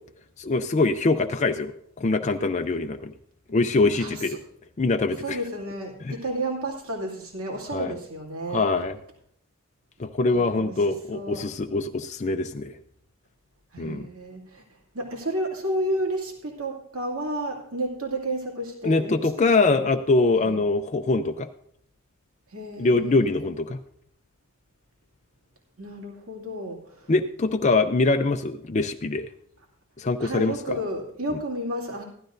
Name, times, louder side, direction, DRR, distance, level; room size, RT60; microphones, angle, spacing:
voice 1, 0.4-3.1 3.5-4.4 4.8-5.4 6.0-6.1 7.7-7.9 8.5-9.0 10.0-12.8 13.8-14.0 18.8-21.5 22.8-23.8 27.1-29.3 30.0-30.5, left 3 dB, 35° left, 6 dB, 0.5 m, -23 dB
voice 2, 3.9-4.4 5.2-8.7 10.3-11.4 13.7-19.9 20.4-20.6 22.5-23.6 25.8-27.1 30.2-32.0, right 1 dB, 80° right, -1 dB, 2.5 m, -32 dB
15.5 x 12.0 x 2.6 m, 0.68 s
head